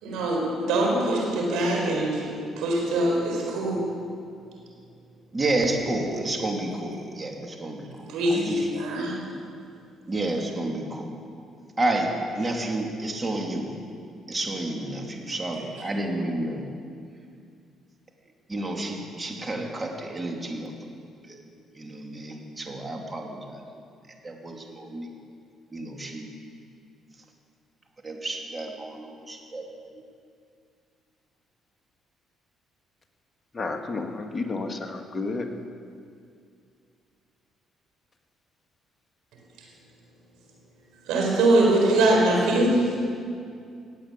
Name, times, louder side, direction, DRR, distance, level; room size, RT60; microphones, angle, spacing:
voice 1, 0.0-3.8 8.1-9.2 41.1-42.8, right 1 dB, 80° right, -1 dB, 4.3 m, -23 dB
voice 2, 5.3-8.6 10.1-11.1 11.8-12.1 12.3-13.7 14.3-16.6 18.5-20.7 21.3-21.4 21.7-23.6 24.2-25.1 25.7-26.3 28.0-29.6, right 2 dB, 25° right, 1 dB, 2.8 m, -30 dB
voice 3, 33.5-35.4, left 3 dB, 30° left, 3 dB, 2.0 m, -31 dB
17.0 x 8.6 x 8.2 m, 2.4 s
supercardioid pair, 65°, 0 cm